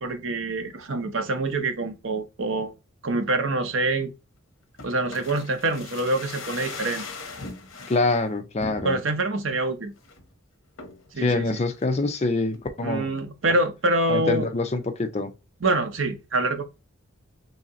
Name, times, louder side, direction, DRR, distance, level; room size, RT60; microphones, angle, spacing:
voice 1, 0.0-2.7 3.0-4.1 4.8-7.0 8.8-9.9 11.1-11.4 12.8-14.5 15.6-16.6, right 2 dB, 70° right, 0.7 m, -25 dB
sound 1, 4.8-8.0 8.6-9.2 9.6-9.7 10.0-10.3 10.8-11.1 11.6-12.3 12.5-12.6, left 4 dB, 70° left, 0.8 m, -39 dB
voice 2, 7.9-9.0 11.2-13.1 14.1-15.3, left 2 dB, 30° left, 0.4 m, -25 dB
3.2 x 2.7 x 3.7 m
head